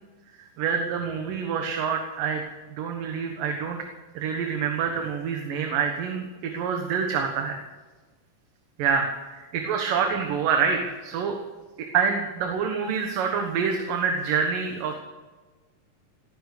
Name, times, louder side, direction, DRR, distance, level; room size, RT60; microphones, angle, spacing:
voice 1, 0.6-2.4 2.8-3.8 4.2-7.6 8.8-11.4 11.9-14.9, right 6 dB, 75° right, 3 dB, 3.1 m, -26 dB
19.0 x 10.0 x 6.8 m, 1.3 s
omnidirectional pair, 4.0 m